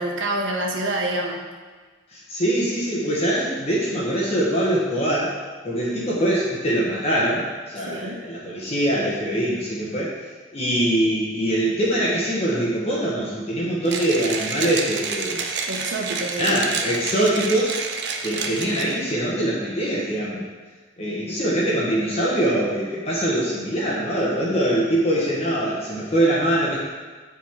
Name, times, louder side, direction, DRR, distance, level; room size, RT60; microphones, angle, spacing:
voice 1, 0.0-1.4 7.9-8.2 15.7-16.6, right 1 dB, 85° right, 0 dB, 1.0 m, -27 dB
voice 2, 2.1-5.4 5.6-10.1 10.5-15.4 16.4-17.8 18.2-20.5 21.0-26.8, right 1 dB, 35° left, -5 dB, 1.1 m, -23 dB
Mechanisms, 13.9-19.1, right 5 dB, 65° right, 0.6 m, -29 dB
9.2 x 3.7 x 4.4 m, 1.4 s
head